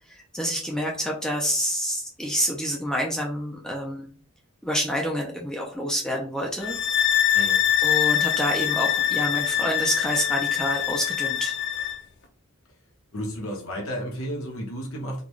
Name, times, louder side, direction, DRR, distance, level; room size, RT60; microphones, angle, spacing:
voice 1, 0.1-4.1 4.6-6.8 7.8-11.5, equal, 5° left, -1 dB, 0.4 m, -28 dB
sound 1, 6.6-12.0, left 10 dB, 50° left, 0.6 m, -24 dB
voice 2, 13.1-15.2, equal, 70° left, 0 dB, 1.1 m, -32 dB
3.8 x 2.3 x 3.1 m, 0.43 s
head